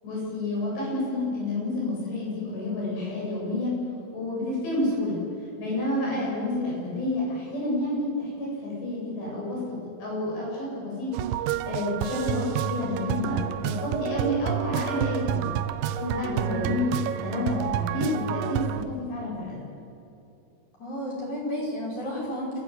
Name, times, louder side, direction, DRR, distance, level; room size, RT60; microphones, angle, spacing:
voice 1, 0.0-3.7 4.1-5.2 5.6-11.1 11.7-15.5 16.0-16.9 17.2-19.7, left 2 dB, 80° left, -4 dB, 10.5 m, -29 dB
sound 1, 11.1-18.8, right 11 dB, 80° right, 2.1 m, -29 dB
voice 2, 16.3-16.8 20.8-22.6, equal, 35° left, -4 dB, 6.2 m, -32 dB
29.5 x 15.0 x 8.0 m, 2.7 s
omnidirectional pair, 4.9 m